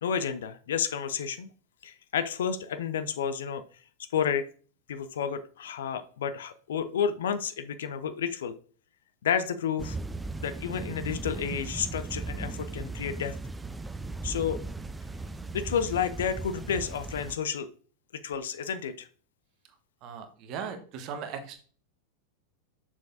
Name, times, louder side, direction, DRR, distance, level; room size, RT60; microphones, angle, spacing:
voice 1, 0.0-1.5 1.8-3.6 4.1-4.5 4.9-8.5 9.2-10.0 10.4-13.4 14.2-14.6 15.5-17.7 18.2-19.1, left 7 dB, 60° left, 11 dB, 0.5 m, -31 dB
sound 1, 9.8-17.4, right 3 dB, 10° right, 0.3 m, -37 dB
voice 2, 20.0-21.6, right 6 dB, 40° right, 7 dB, 1.1 m, -38 dB
6.7 x 5.8 x 2.6 m, 0.42 s
figure-of-eight pair, 90°, 0 cm